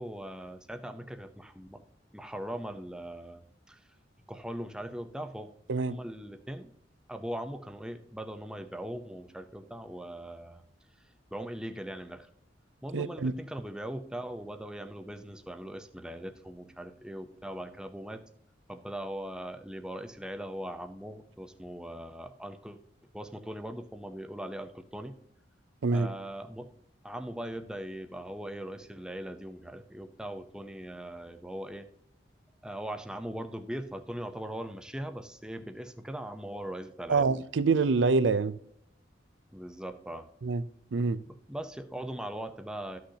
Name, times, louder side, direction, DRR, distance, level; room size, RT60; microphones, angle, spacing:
voice 1, 0.0-1.8 2.1-3.8 4.3-5.5 5.9-6.7 7.1-10.6 11.3-12.3 12.8-18.2 18.7-22.8 23.1-25.2 25.9-26.7 27.0-31.9 32.6-37.3 39.5-40.3 41.3-43.0, right 1 dB, 5° right, 0.6 m, -40 dB
voice 2, 12.9-13.3 25.8-26.1 37.1-38.6 40.4-40.6 40.9-41.2, right 4 dB, 85° right, 0.5 m, -26 dB
13.0 x 6.3 x 2.8 m
head